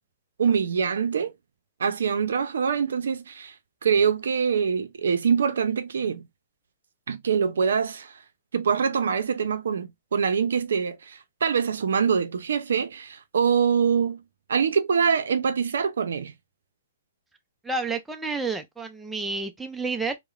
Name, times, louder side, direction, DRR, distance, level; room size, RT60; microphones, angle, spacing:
voice 1, 0.4-1.3 1.8-3.5 3.8-6.2 7.1-8.1 8.5-14.2 14.5-16.3, right 6 dB, 75° right, 0.5 m, -24 dB
voice 2, 17.6-20.2, right 3 dB, 5° right, 0.3 m, -30 dB
2.8 x 2.0 x 2.4 m
hypercardioid pair, 145°, 0 cm